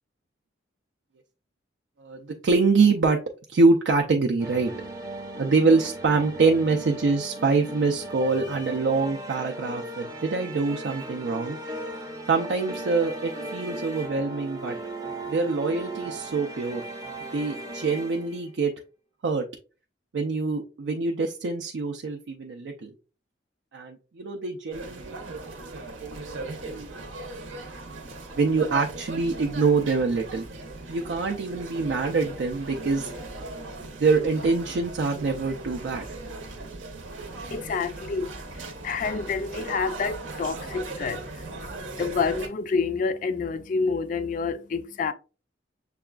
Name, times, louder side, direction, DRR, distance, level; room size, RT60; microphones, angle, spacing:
voice 1, 2.0-3.2 3.5-4.7 5.4-11.6 12.3-14.8 15.3-16.8 17.3-18.7 19.2-19.5 20.1-22.9 23.7-26.9 28.4-30.5 30.9-33.1 34.0-36.1, right 4 dB, 70° right, 0.4 m, -25 dB
sound 1, 4.4-18.6, right 2 dB, 20° right, 0.5 m, -37 dB
sound 2, 24.7-42.5, right 2 dB, 90° right, 0.8 m, -38 dB
voice 2, 37.3-45.1, left 4 dB, 45° left, 0.3 m, -29 dB
6.7 x 2.3 x 2.3 m
head